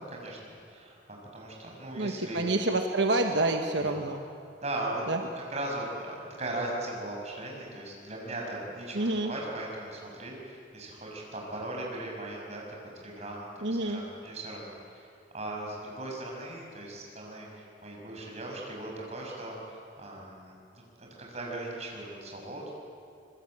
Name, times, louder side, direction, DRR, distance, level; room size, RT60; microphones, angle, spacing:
voice 1, 0.0-2.5 3.8-3.9 4.6-5.0 5.5-12.6 12.9-15.1 15.3-20.5 21.0-22.7, right 1 dB, 35° right, -1 dB, 6.2 m, -38 dB
voice 2, 2.0-4.2 5.1-5.2 8.9-9.3 13.6-14.0, right 2 dB, 80° right, 4 dB, 1.3 m, -28 dB
25.5 x 21.5 x 8.7 m, 2.4 s
head